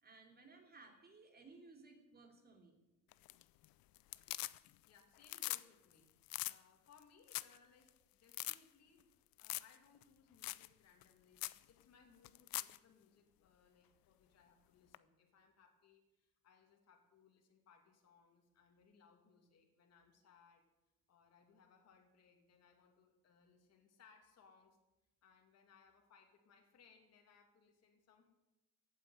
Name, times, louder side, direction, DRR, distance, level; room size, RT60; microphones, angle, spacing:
voice 1, 0.0-2.8, right 3 dB, 25° right, 3 dB, 3.2 m, -60 dB
sound 1, 3.1-3.7 4.0-4.9 5.2-5.6 5.9-6.0 6.3-6.6 7.0-7.1 7.3-7.6 7.9-8.0 8.3-8.6 9.4-9.8 10.0-10.1 10.4-10.7 11.0-11.1 11.4-11.6 12.2-12.8 14.9-15.0, left 18 dB, 85° left, 0.6 m, -42 dB
voice 2, 4.8-9.1 9.4-20.7 21.1-24.8 25.2-28.2, left 5 dB, 45° left, 2 dB, 2.6 m, -68 dB
15.5 x 9.0 x 9.4 m, 1.0 s
cardioid pair, 160°, 34 cm